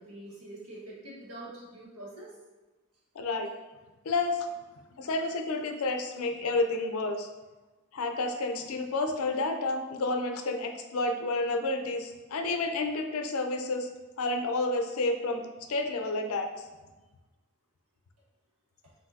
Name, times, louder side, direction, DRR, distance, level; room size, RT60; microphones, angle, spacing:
voice 1, 0.0-2.3, right 1 dB, 85° right, -5 dB, 1.4 m, -45 dB
voice 2, 3.2-3.5 4.0-4.5 5.0-7.3 7.9-13.9 14.2-15.4 15.7-16.5, left 2 dB, 70° left, 6 dB, 0.5 m, -30 dB
5.6 x 2.7 x 2.6 m, 1.2 s
head